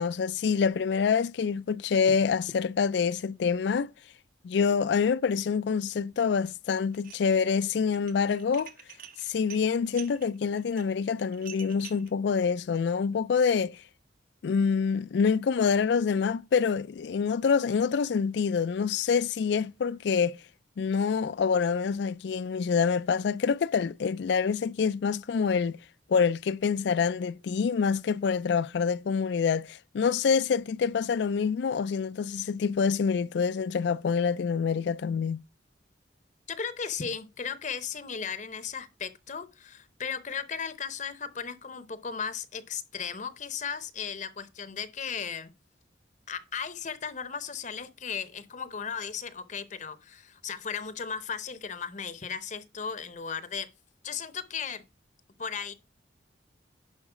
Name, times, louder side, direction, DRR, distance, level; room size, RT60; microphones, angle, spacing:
voice 1, 0.0-3.9 4.4-8.7 9.2-13.8 14.4-20.4 20.8-25.8 26.1-35.4, left 6 dB, 65° left, 0.3 m, -26 dB
Dishes pots and pans, 6.9-7.5 7.9-12.1, right 9 dB, 50° right, 1.0 m, -47 dB
voice 2, 36.5-45.5 46.3-53.7 54.0-54.8 55.4-55.7, left 6 dB, 40° left, 0.7 m, -36 dB
11.0 x 4.1 x 4.9 m
head